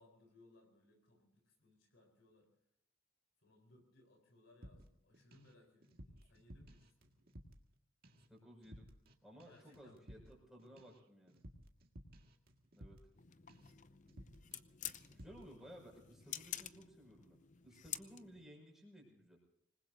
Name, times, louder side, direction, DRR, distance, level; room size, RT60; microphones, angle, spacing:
voice 1, 0.0-2.5 3.4-7.3 9.5-10.1, left 2 dB, 60° left, 2 dB, 4.3 m, -67 dB
sound 1, 4.6-5.5 5.8-7.8 8.0-8.3 8.6-9.1 9.4-13.2 13.5-13.8 14.1-14.6 14.9-15.5, equal, 45° right, 1.9 m, -57 dB
voice 2, 8.3-8.9 9.2-11.4 12.7-13.0 15.1-17.4 17.6-19.4, equal, ahead, -2 dB, 6.1 m, -57 dB
sound 2, 13.1-18.5, left 11 dB, 35° left, 0.6 m, -50 dB
26.0 x 20.5 x 2.7 m, 0.74 s
head